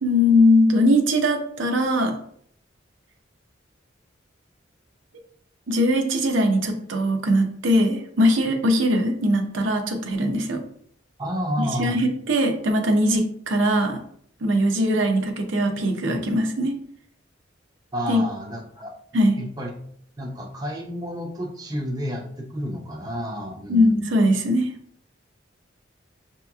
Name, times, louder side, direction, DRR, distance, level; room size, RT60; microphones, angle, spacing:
voice 1, 0.0-2.1 5.7-10.6 11.6-14.0 14.4-16.7 18.1-18.2 19.1-19.4 23.7-24.7, left 1 dB, 85° right, 3 dB, 0.7 m, -21 dB
voice 2, 11.2-12.0 17.9-18.9 19.4-19.7 20.2-24.1, equal, 20° right, 0 dB, 0.6 m, -30 dB
6.1 x 2.9 x 2.3 m, 0.65 s
head